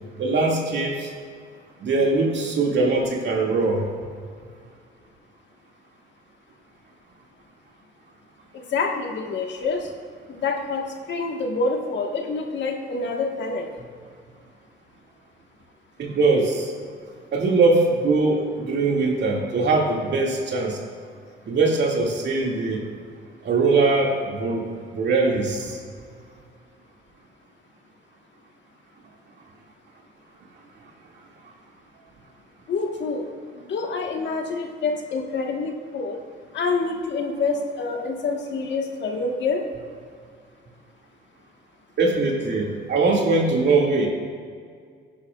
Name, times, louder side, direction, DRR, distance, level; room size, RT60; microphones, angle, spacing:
voice 1, 0.2-1.1 1.8-3.8 16.0-16.7 17.3-20.8 21.4-22.8 23.4-24.7 24.9-25.8 42.0-44.1, right 3 dB, 60° right, -1 dB, 2.4 m, -21 dB
voice 2, 8.5-9.9 10.3-13.7 32.7-33.3 33.6-36.2 36.5-39.6, left 4 dB, 65° left, 1 dB, 1.6 m, -27 dB
16.0 x 10.0 x 2.5 m, 2.1 s
cardioid pair, 90°, 20 cm